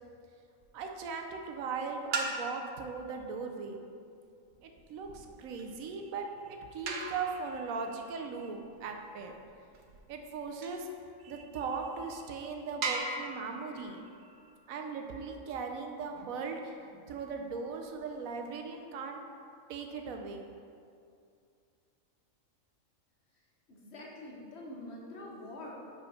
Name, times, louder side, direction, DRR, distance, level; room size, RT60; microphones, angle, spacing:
sound 1, 0.6-1.1 2.0-2.8 4.5-10.9 11.6-11.7 12.2-12.3 12.8-15.5 17.6-18.6, right 3 dB, 65° right, 1.0 m, -41 dB
voice 1, 0.7-3.8 4.6-9.4 10.1-10.9 11.2-14.3 14.7-19.3 19.7-20.5, right 4 dB, 90° right, 4 dB, 1.1 m, -39 dB
voice 2, 23.7-25.7, left 1 dB, 55° left, -2 dB, 1.3 m, -45 dB
5.1 x 5.1 x 5.6 m, 2.4 s
omnidirectional pair, 1.4 m